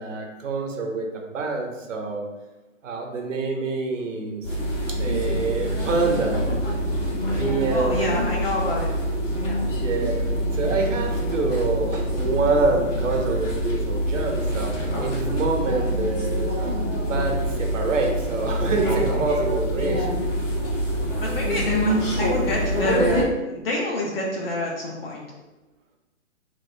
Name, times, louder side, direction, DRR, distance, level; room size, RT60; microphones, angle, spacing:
voice 1, 0.0-2.3 2.8-4.5 4.9-6.4 7.1-8.3 9.8-10.2 10.5-16.7 17.0-20.1, right 3 dB, 70° right, 2 dB, 0.8 m, -26 dB
sound 1, 4.4-23.2, equal, 65° left, 1.3 m, -25 dB
voice 2, 7.7-8.9 9.4-9.6 21.2-25.2, left 1 dB, 45° left, -2 dB, 0.6 m, -28 dB
2.9 x 2.8 x 2.7 m, 1.1 s
hypercardioid pair, 155°, 40 cm